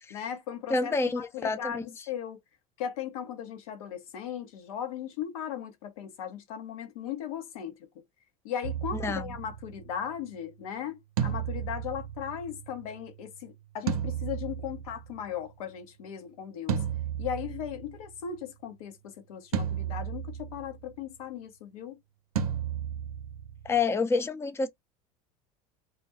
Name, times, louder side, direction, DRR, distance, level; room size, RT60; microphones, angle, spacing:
voice 1, 0.1-2.4 2.8-8.0 8.4-16.8 17.2-22.0, left 9 dB, 80° left, 0.8 m, -37 dB
voice 2, 0.7-1.8 8.9-9.3 23.6-24.7, left 4 dB, 15° left, 0.5 m, -28 dB
sound 1, 8.6-9.9 11.2-12.9 13.9-15.2 16.7-18.1 19.5-20.7 22.4-23.8, right 8 dB, 90° right, 0.6 m, -33 dB
2.3 x 2.2 x 2.6 m
hypercardioid pair, 85°, 18 cm